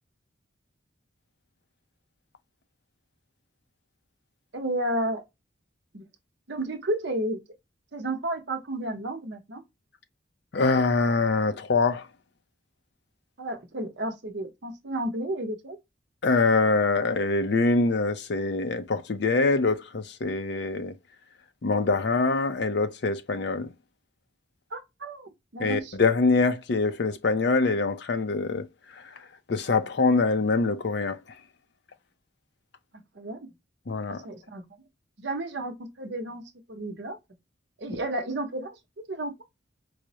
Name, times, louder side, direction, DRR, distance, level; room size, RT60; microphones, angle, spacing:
voice 1, 4.5-5.2 5.9-6.0 6.5-7.4 7.9-9.6 13.4-15.8 24.7-25.9 33.1-33.5 34.2-34.6 35.2-36.4 36.7-37.2 37.8-39.3, right 1 dB, 60° right, 0.8 m, -32 dB
voice 2, 10.5-12.1 16.2-20.9 21.6-23.7 25.6-28.7 28.9-29.1 29.5-31.2 33.9-34.3, left 3 dB, 55° left, 0.5 m, -24 dB
4.8 x 2.0 x 2.7 m
head